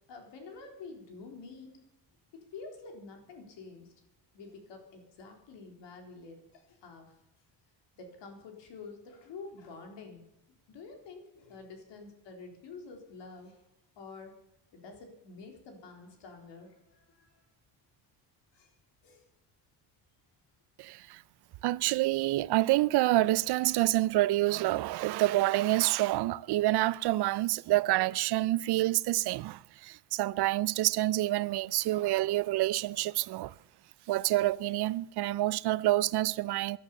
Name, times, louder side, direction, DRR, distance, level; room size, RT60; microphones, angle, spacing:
voice 1, 0.1-1.9 2.5-3.9 4.3-7.2 7.9-10.3 10.7-13.6 14.0-14.4 14.7-17.4 18.5-18.7 19.0-19.2, left 4 dB, 75° left, 4.0 m, -48 dB
voice 2, 20.8-21.2 21.6-33.5 34.1-36.8, right 16 dB, 65° right, 0.5 m, -27 dB
17.5 x 11.5 x 7.2 m
cardioid pair, 160°, 43 cm